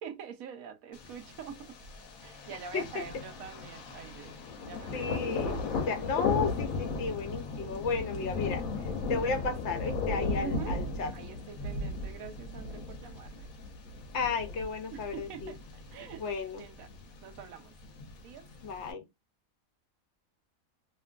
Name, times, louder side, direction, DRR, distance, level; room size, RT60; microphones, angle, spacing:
voice 1, 0.0-1.8 2.2-4.3 4.7-5.1 10.4-10.8 11.1-13.5 14.9-16.2 16.6-16.9 17.2-17.8 18.2-18.5, right 7 dB, 90° right, 1.1 m, -44 dB
Thunder, 0.9-18.9, left 3 dB, 90° left, 1.2 m, -37 dB
voice 2, 4.9-5.6 5.9-8.6 9.1-11.1 14.1-15.5 16.2-16.6 18.6-19.0, left 4 dB, 60° left, 0.9 m, -33 dB
2.9 x 2.4 x 2.3 m
omnidirectional pair, 1.4 m